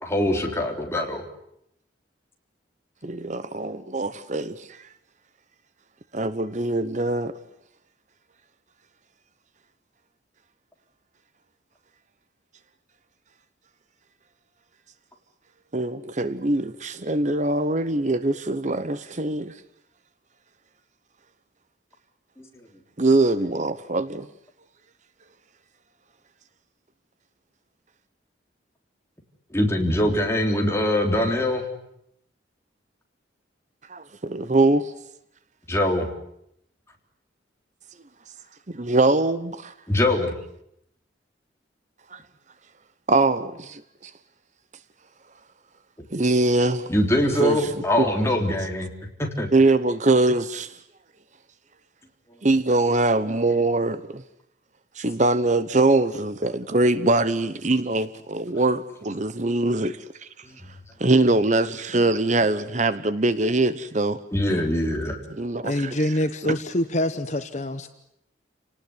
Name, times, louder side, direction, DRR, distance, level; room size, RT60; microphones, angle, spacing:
voice 1, 0.0-1.2 22.4-22.5 29.5-31.6 35.7-36.1 39.9-40.3 46.9-48.9 49.2-49.5 60.4-60.6 64.3-65.2, left 1 dB, 15° left, 3.6 m, -23 dB
voice 2, 3.0-4.8 6.1-7.3 15.7-19.5 23.0-24.3 33.9-34.9 38.7-39.7 42.1-42.2 43.1-44.1 46.1-46.9 47.1-48.1 49.5-50.8 52.4-54.2 55.0-60.3 61.0-64.2 65.3-66.1 66.4-66.5, right 2 dB, 40° right, 0.9 m, -23 dB
voice 3, 65.6-67.9, left 1 dB, 35° left, 1.0 m, -25 dB
28.5 x 19.0 x 9.6 m
head